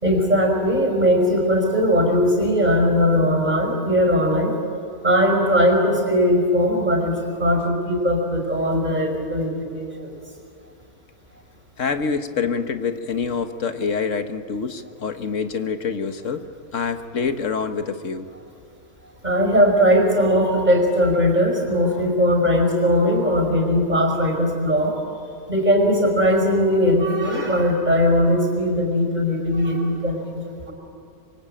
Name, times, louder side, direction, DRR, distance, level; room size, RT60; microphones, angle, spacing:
voice 1, 0.0-4.6 5.0-10.2 19.2-25.0 25.5-30.7, equal, 30° right, 3 dB, 5.4 m, -19 dB
voice 2, 11.8-16.5 16.7-18.3, left 5 dB, 60° left, 9 dB, 1.6 m, -26 dB
26.5 x 24.0 x 8.9 m, 2.6 s
omnidirectional pair, 1.6 m